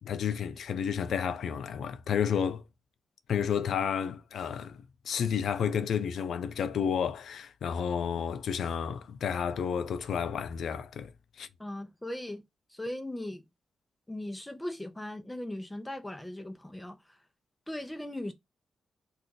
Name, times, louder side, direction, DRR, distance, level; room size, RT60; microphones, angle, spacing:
voice 1, 0.0-2.6 3.3-11.5, left 7 dB, 80° left, 0.4 m, -31 dB
voice 2, 11.6-12.4 12.7-13.5 14.1-17.2 17.7-18.3, left 1 dB, 10° left, 0.6 m, -38 dB
2.5 x 2.4 x 3.7 m
cardioid pair, 105°, 0 cm